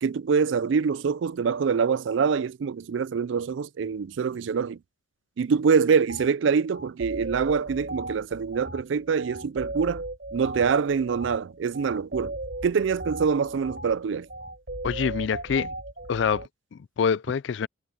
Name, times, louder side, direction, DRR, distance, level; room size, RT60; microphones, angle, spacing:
voice 1, 0.0-4.8 5.4-10.0 10.3-12.4 12.6-14.3, right 6 dB, 75° right, 0.4 m, -25 dB
sound 1, 6.1-6.3 6.7-16.5, right 2 dB, 55° right, 3.8 m, -36 dB
voice 2, 14.8-15.7 16.1-17.7, left 6 dB, 70° left, 0.4 m, -26 dB
head